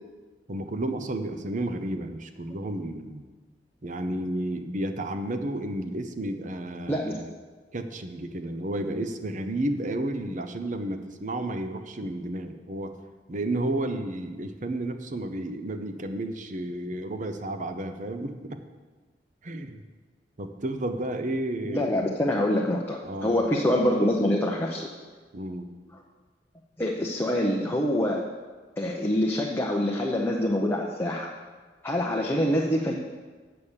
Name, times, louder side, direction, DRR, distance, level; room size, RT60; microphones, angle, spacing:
voice 1, 0.5-3.2 3.8-7.3 7.7-12.9 13.3-18.6 19.4-19.8 20.4-22.1 23.0-23.4 25.3-25.7, right 1 dB, 45° right, 8 dB, 0.8 m, -32 dB
voice 2, 21.6-24.9 26.8-28.3 28.8-31.3 31.8-32.9, left 1 dB, 15° left, -2 dB, 0.8 m, -25 dB
8.2 x 6.7 x 7.3 m, 1.4 s
head